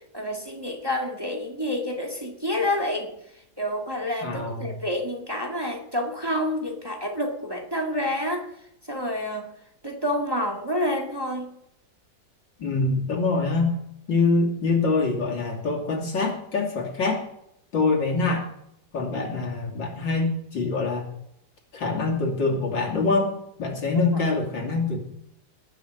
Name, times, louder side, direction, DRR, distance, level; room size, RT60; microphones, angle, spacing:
voice 1, 0.1-3.1 3.6-8.4 8.9-9.4 9.8-11.5, left 1 dB, 15° right, 1 dB, 1.9 m, -28 dB
voice 2, 4.2-4.8 12.6-13.8 14.1-17.2 17.7-18.5 18.9-21.1 21.7-23.3 23.6-25.0, left 3 dB, 85° left, 0 dB, 3.5 m, -24 dB
20.0 x 7.1 x 6.3 m, 0.78 s
omnidirectional pair, 2.0 m